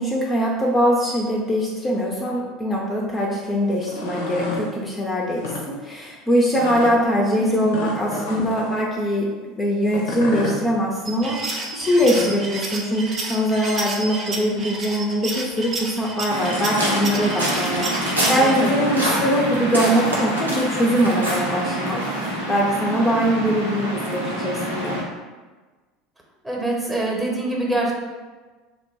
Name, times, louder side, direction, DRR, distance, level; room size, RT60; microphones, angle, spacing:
voice 1, 0.0-9.3 9.6-25.0, equal, 20° left, -3 dB, 0.5 m, -22 dB
sound 1, 3.7-4.7 5.3-5.6 6.5-6.9 7.7-8.7 9.9-10.6 11.8-12.5, left 2 dB, 65° left, 0.6 m, -30 dB
voice 2, 7.4-8.0 18.2-18.8 26.4-27.9, right 2 dB, 10° right, -2 dB, 0.9 m, -26 dB
sound 2, 11.1-18.5, right 2 dB, 35° right, 0.5 m, -31 dB
Waves surf, 16.3-25.0, right 1 dB, 90° right, 0.6 m, -25 dB
2.8 x 2.1 x 4.0 m, 1.3 s
figure-of-eight pair, 70°, 0 cm